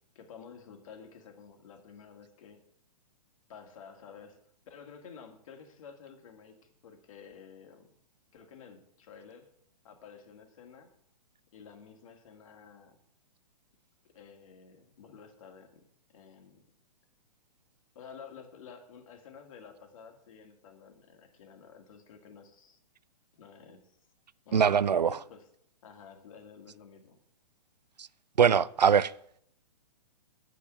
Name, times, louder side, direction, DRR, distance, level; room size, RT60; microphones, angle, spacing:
voice 1, 0.2-2.6 3.5-4.4 4.7-6.6 6.8-8.0 8.3-9.5 9.8-10.9 11.5-13.0 14.1-15.8 16.1-16.7 17.9-22.8 23.3-23.9 24.5-25.5 25.8-27.2, left 6 dB, 55° left, 2.1 m, -51 dB
voice 2, 24.5-25.2 28.0-28.1 28.4-29.1, right 7 dB, 80° right, 0.5 m, -22 dB
9.1 x 6.3 x 7.9 m
figure-of-eight pair, 120°, 21 cm